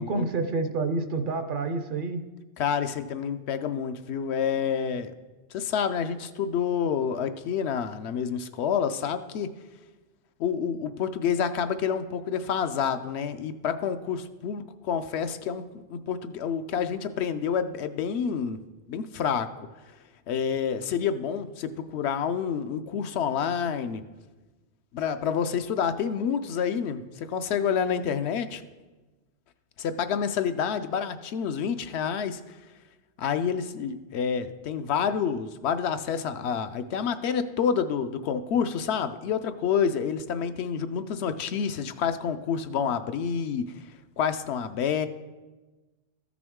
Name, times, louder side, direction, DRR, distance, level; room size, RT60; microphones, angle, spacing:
voice 1, 0.0-2.2, right 3 dB, 60° right, 9 dB, 0.6 m, -28 dB
voice 2, 2.6-5.1 5.5-9.5 10.4-18.6 18.9-19.5 20.3-24.0 24.9-28.6 29.8-32.4 33.2-43.7 44.2-45.1, left 7 dB, 80° left, 10 dB, 0.8 m, -28 dB
13.5 x 6.1 x 3.6 m, 1.2 s
omnidirectional pair, 1.1 m